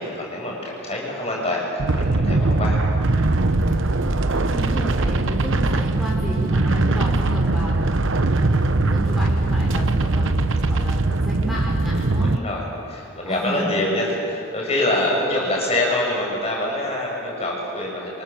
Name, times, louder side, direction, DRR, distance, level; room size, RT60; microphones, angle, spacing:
voice 1, 0.0-2.8 12.2-18.2, left 1 dB, 30° left, -2 dB, 6.7 m, -25 dB
sound 1, 1.8-12.4, right 2 dB, 65° right, 0.9 m, -21 dB
voice 2, 3.5-4.0 4.3-12.3 13.2-13.7, equal, ahead, -5 dB, 5.7 m, -32 dB
30.0 x 25.0 x 7.5 m, 2.6 s
head